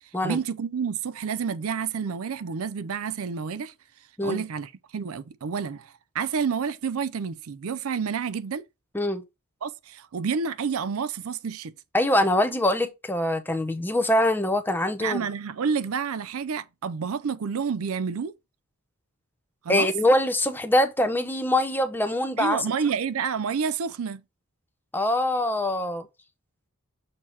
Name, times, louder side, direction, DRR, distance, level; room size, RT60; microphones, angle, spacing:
voice 1, 0.2-3.7 4.2-8.6 9.6-11.7 15.0-18.3 19.6-19.9 22.4-24.2, right 6 dB, 70° right, 0.5 m, -29 dB
voice 2, 11.9-15.2 19.7-22.7 24.9-26.1, left 1 dB, 10° left, 0.7 m, -23 dB
6.5 x 2.9 x 5.6 m
head